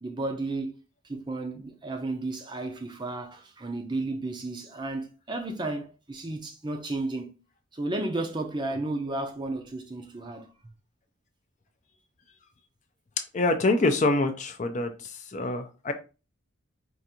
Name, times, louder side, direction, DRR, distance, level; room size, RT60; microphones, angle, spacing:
voice 1, 0.0-0.8 1.0-7.3 7.7-10.5, right 2 dB, 20° right, 0.5 m, -33 dB
voice 2, 13.3-14.9 15.3-15.9, left 2 dB, 35° left, 0.4 m, -25 dB
4.7 x 2.5 x 2.8 m
head